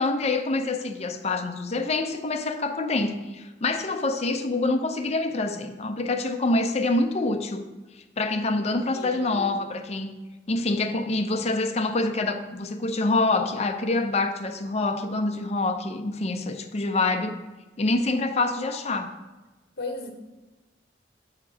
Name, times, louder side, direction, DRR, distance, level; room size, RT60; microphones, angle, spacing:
voice 1, 0.0-7.6 8.2-10.1 10.5-17.4 17.8-19.1, left 2 dB, 35° left, 6 dB, 0.5 m, -26 dB
voice 2, 8.9-9.6 19.8-20.1, left 2 dB, 60° left, 4 dB, 1.0 m, -36 dB
8.1 x 2.9 x 6.0 m, 1.2 s
head